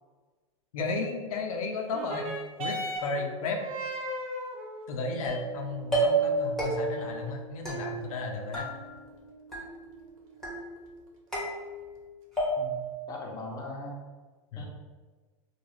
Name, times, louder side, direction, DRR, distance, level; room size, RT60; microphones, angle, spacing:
voice 1, 0.7-2.3 2.6-3.6 4.9-8.7 14.5-14.7, left 3 dB, 85° left, 3 dB, 0.4 m, -33 dB
sound 1, 1.8-10.8 11.6-11.7, right 1 dB, 75° right, 0.6 m, -40 dB
sound 2, 5.2-5.6 5.9-6.3 6.6-7.1 7.7-8.3 8.5-9.2 9.5-10.0 10.4-10.9 11.3-12.0 12.4-12.9, right 3 dB, ahead, 1.0 m, -31 dB
voice 2, 13.1-13.9 14.6-14.7, left 2 dB, 20° left, -1 dB, 0.6 m, -39 dB
2.4 x 2.2 x 3.1 m, 1.4 s
hypercardioid pair, 115°, 18 cm